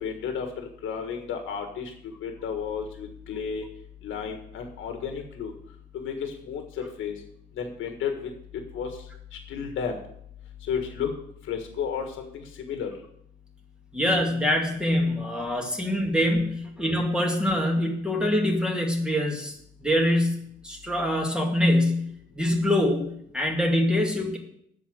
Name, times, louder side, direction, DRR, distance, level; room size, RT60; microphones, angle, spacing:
voice 1, 0.0-1.9 2.2-3.6 4.0-5.5 5.9-6.6 7.0-7.1 7.6-8.3 8.7-8.9 9.5-10.0 10.7-11.1 11.5-12.9, left 7 dB, 80° left, 4 dB, 1.6 m, -32 dB
voice 2, 13.9-19.5 19.8-24.4, left 1 dB, 5° right, 1 dB, 2.3 m, -24 dB
7.9 x 6.2 x 7.8 m, 0.71 s
cardioid pair, 90°, 20 cm